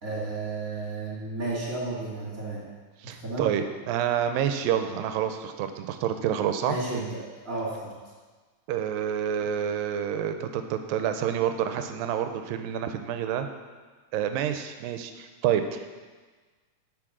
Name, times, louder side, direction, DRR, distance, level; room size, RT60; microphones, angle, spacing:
voice 1, 0.0-2.6 3.2-3.5 6.6-7.9, right 2 dB, 30° right, -6 dB, 1.9 m, -32 dB
voice 2, 3.0-6.8 8.7-13.5 14.1-16.0, right 9 dB, 80° right, 8 dB, 2.3 m, -28 dB
8.7 x 6.7 x 6.1 m, 1.4 s
omnidirectional pair, 4.2 m